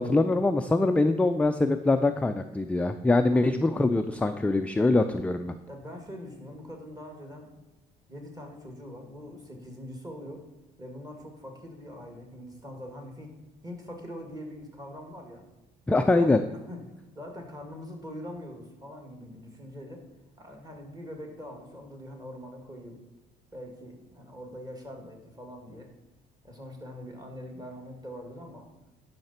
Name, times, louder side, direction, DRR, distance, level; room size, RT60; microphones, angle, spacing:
voice 1, 0.0-5.5 15.9-16.4, left 2 dB, 5° left, 7 dB, 0.4 m, -23 dB
voice 2, 5.7-7.6 8.1-10.4 10.8-13.3 13.6-15.4 15.9-16.8 17.1-20.0 20.4-23.0 23.5-25.9 26.4-28.7, equal, 20° right, 2 dB, 2.2 m, -43 dB
11.0 x 5.8 x 4.3 m, 1.1 s
cardioid pair, 110°, 17 cm